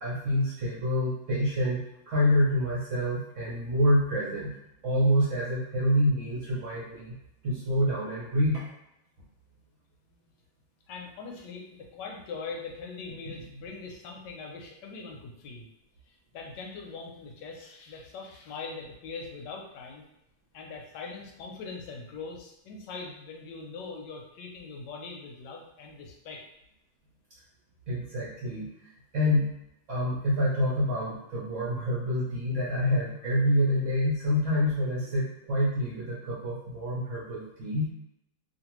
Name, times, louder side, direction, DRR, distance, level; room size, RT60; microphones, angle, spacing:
voice 1, 0.0-1.8 2.1-4.5 4.8-7.1 7.4-8.6 27.9-28.7 29.1-29.5 29.9-37.9, equal, 60° right, -7 dB, 0.8 m, -27 dB
voice 2, 10.9-15.7 16.1-20.0 20.5-26.4, left 4 dB, 75° left, 0 dB, 1.1 m, -41 dB
2.8 x 2.5 x 2.9 m, 0.85 s
omnidirectional pair, 2.0 m